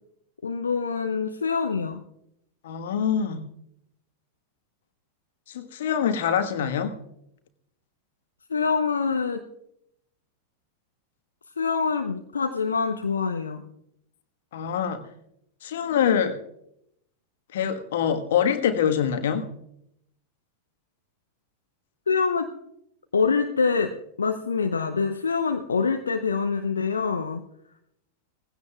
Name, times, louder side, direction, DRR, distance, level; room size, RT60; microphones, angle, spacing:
voice 1, 0.4-2.0 8.5-9.4 11.6-13.6 22.1-22.5 23.1-27.4, left 5 dB, 75° left, 0.8 m, -25 dB
voice 2, 2.6-3.4 5.5-7.0 14.5-15.0 15.6-16.4 17.5-19.5, left 8 dB, 60° left, 1.4 m, -24 dB
19.0 x 16.0 x 2.4 m
figure-of-eight pair, 90°, 0 cm